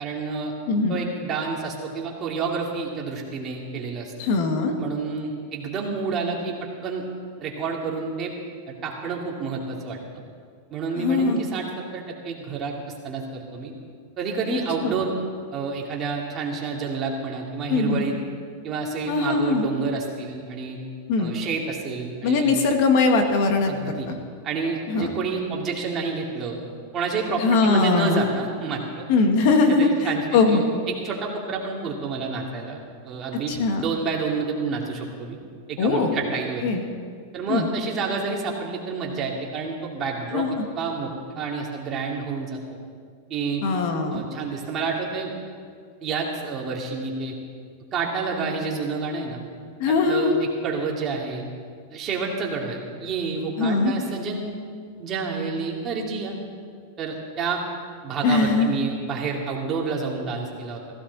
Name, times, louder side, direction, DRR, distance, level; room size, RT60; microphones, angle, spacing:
voice 1, 0.0-0.5 0.9-4.1 4.8-6.6 6.8-7.1 7.4-8.3 8.7-10.0 10.7-11.7 11.9-13.7 14.2-15.1 15.5-18.2 18.6-20.8 21.2-22.6 23.7-24.1 24.4-26.6 26.9-29.1 29.7-35.4 35.7-36.6 37.3-40.5 40.8-42.6 43.3-43.6 44.1-45.3 46.0-47.4 47.9-49.4 50.1-50.3 50.6-51.4 51.9-54.6 55.0-56.4 57.0-57.6 58.0-60.8, right 4 dB, 30° right, -1 dB, 2.5 m, -29 dB
voice 2, 0.7-1.0 4.2-4.7 11.0-11.4 14.8-15.0 17.7-18.0 19.1-19.7 21.1-21.3 22.2-23.7 24.1-24.2 24.9-25.1 27.4-28.2 29.1-29.9 30.3-30.6 33.5-33.8 35.8-36.2 36.6-36.8 37.5-37.7 40.3-40.5 43.6-44.2 49.8-50.3 53.6-53.9 58.2-58.7, left 4 dB, 55° left, 4 dB, 1.8 m, -21 dB
16.5 x 15.5 x 4.1 m, 2.1 s
supercardioid pair, 135°, 0 cm